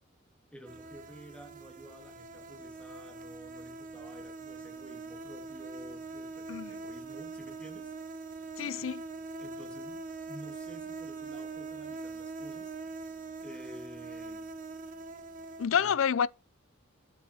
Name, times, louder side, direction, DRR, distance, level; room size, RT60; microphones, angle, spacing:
voice 1, 0.5-7.9 8.5-8.9 9.4-12.8 13.4-14.5 15.8-15.9, equal, 5° left, 2.2 m, -51 dB
sound 1, 0.7-15.7, right 3 dB, 40° right, 1.0 m, -43 dB
voice 2, 8.6-9.0 15.6-16.3, left 7 dB, 70° left, 0.4 m, -28 dB
8.1 x 6.3 x 4.2 m
head